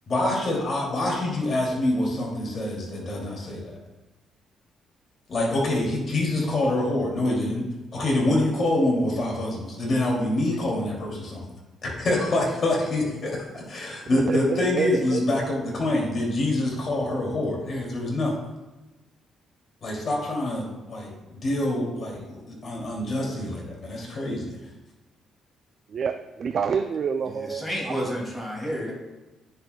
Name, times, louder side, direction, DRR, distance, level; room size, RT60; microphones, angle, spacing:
voice 1, 0.1-3.7 5.3-7.6 7.9-11.4 12.0-18.3 19.8-24.5, left 1 dB, 45° left, -2 dB, 2.6 m, -26 dB
voice 2, 14.1-15.2 25.9-27.6, right 6 dB, 55° right, 8 dB, 0.4 m, -27 dB
voice 3, 27.2-28.9, equal, 10° left, -2 dB, 2.5 m, -30 dB
9.9 x 6.4 x 2.3 m, 1.1 s
cardioid pair, 90°, 0 cm